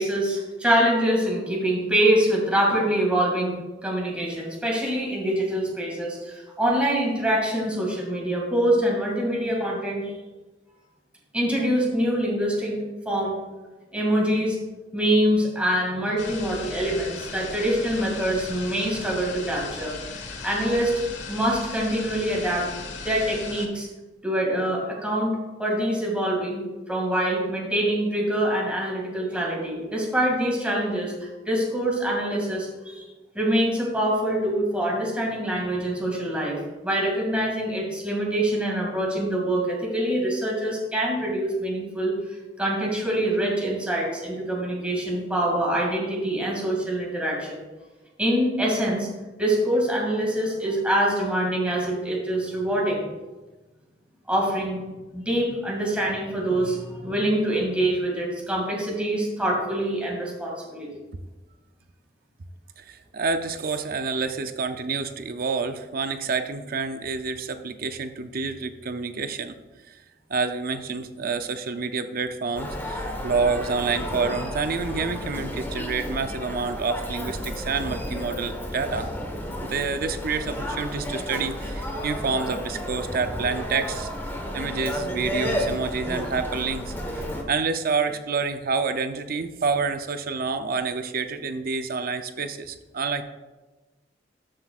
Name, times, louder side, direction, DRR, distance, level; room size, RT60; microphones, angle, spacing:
voice 1, 0.0-10.1 11.3-13.4 13.9-14.6 14.9-20.9 21.3-22.7 23.0-23.9 24.2-33.1 33.3-42.1 42.6-47.6 48.2-49.1 49.4-53.0 54.3-54.8 55.1-60.9, right 1 dB, 5° right, -3 dB, 2.2 m, -25 dB
sound 1, 16.2-23.7, left 4 dB, 85° left, 1.2 m, -37 dB
voice 2, 62.8-69.6 69.9-70.0 70.3-79.1 79.6-84.1 84.5-93.2, right 4 dB, 55° right, 9 dB, 0.5 m, -28 dB
Human voice, 72.6-87.4, equal, 10° left, 1.2 m, -32 dB
13.0 x 7.7 x 2.4 m, 1.2 s
head